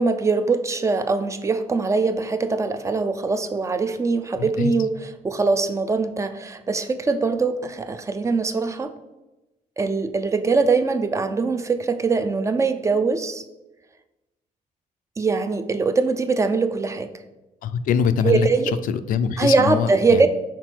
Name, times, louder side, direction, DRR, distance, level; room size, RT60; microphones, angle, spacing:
voice 1, 0.0-8.9 9.8-13.4 15.2-17.1 18.2-18.7 19.4-20.3, right 4 dB, 20° right, 9 dB, 0.4 m, -22 dB
voice 2, 4.4-4.7 17.6-18.5 18.9-20.3, left 7 dB, 75° left, 12 dB, 0.4 m, -23 dB
5.9 x 4.1 x 4.4 m, 1.0 s
cardioid pair, 150°, 14 cm